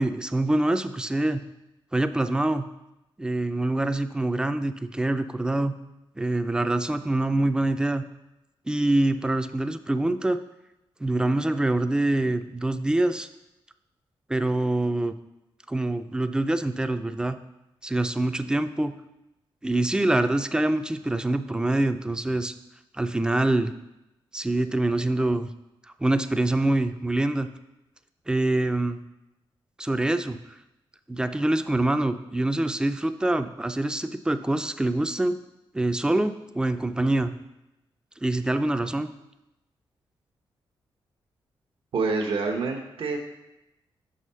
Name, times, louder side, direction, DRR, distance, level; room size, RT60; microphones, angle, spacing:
voice 1, 0.0-1.4 1.9-2.7 3.2-5.7 6.2-8.0 8.7-10.4 11.0-13.3 14.3-15.1 15.7-17.4 17.8-18.9 19.6-22.5 22.9-23.7 24.3-25.5 26.0-27.5 28.3-29.0 29.8-30.4 31.1-35.4 35.7-37.3 38.2-39.1, right 2 dB, 10° right, 10 dB, 0.4 m, -25 dB
voice 2, 41.9-43.2, right 4 dB, 70° right, 1 dB, 0.9 m, -27 dB
6.0 x 5.0 x 5.5 m, 0.92 s
cardioid pair, 95°, 9 cm